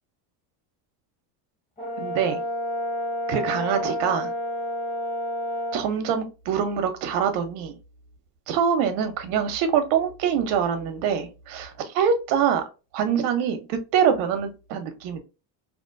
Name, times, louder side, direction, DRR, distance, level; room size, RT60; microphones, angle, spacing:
Brass instrument, 1.8-5.9, left 1 dB, 15° left, 1.3 m, -29 dB
voice 1, 2.0-2.4 3.3-4.3 5.7-7.8 8.5-12.7 12.9-15.2, right 7 dB, 80° right, 8 dB, 0.8 m, -24 dB
2.4 x 2.2 x 2.5 m, 0.30 s
supercardioid pair, 110°, 48 cm